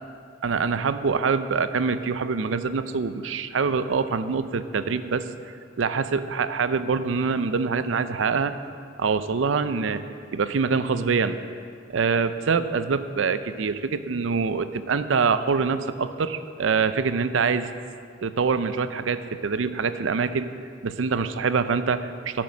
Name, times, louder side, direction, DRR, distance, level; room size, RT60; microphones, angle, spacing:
voice 1, 0.4-5.3 5.8-8.6 9.0-10.0 10.3-11.4 11.9-17.7 18.2-20.5 20.8-22.4, right 5 dB, 80° right, 12 dB, 0.5 m, -25 dB
9.5 x 7.5 x 6.2 m, 2.3 s
head